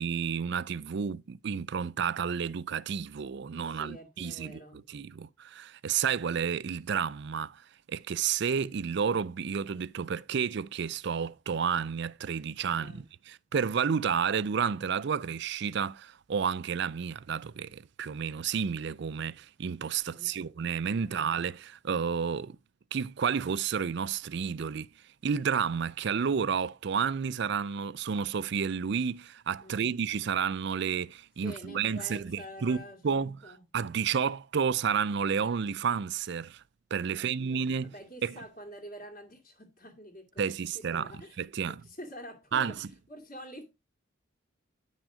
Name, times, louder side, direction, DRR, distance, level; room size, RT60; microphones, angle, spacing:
voice 1, 0.0-7.6 7.9-22.6 22.9-24.9 25.2-33.4 33.7-36.6 36.9-37.9 38.2-38.3 40.4-41.1 41.4-41.8 42.5-42.7, right 6 dB, 55° right, 0.4 m, -31 dB
voice 2, 3.7-4.8 12.7-13.1 20.1-20.4 21.0-21.2 29.6-29.9 31.4-33.6 37.1-41.4 41.7-43.6, equal, 40° left, 2.3 m, -47 dB
10.0 x 6.2 x 4.9 m
head